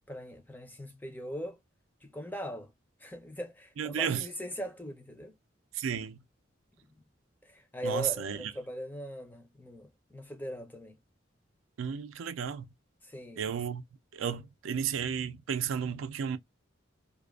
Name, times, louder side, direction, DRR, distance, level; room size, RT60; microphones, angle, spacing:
voice 1, 0.1-1.6 2.0-2.7 3.0-5.3 7.4-11.0 13.0-13.5, equal, 10° left, 0.4 m, -40 dB
voice 2, 3.8-4.2 5.7-6.2 7.8-8.5 11.8-12.7 13.4-13.8 14.1-16.4, right 8 dB, 85° right, 0.4 m, -33 dB
2.4 x 2.3 x 2.2 m
head